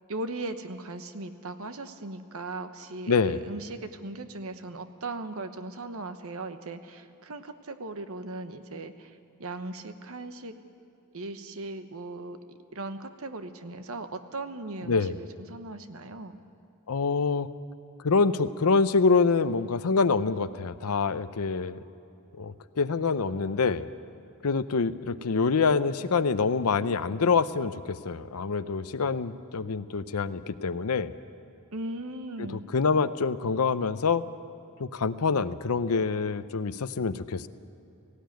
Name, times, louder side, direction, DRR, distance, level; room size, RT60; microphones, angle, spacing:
voice 1, 0.1-9.1 9.4-10.5 11.1-12.4 12.7-16.4 31.7-32.6, right 2 dB, 70° right, 9 dB, 1.1 m, -38 dB
voice 2, 3.1-3.4 14.9-15.2 16.9-17.5 18.0-21.8 22.4-23.8 24.4-31.1 32.4-34.2 34.8-37.5, left 4 dB, 80° left, 12 dB, 0.7 m, -26 dB
18.0 x 16.0 x 9.2 m, 2.8 s
head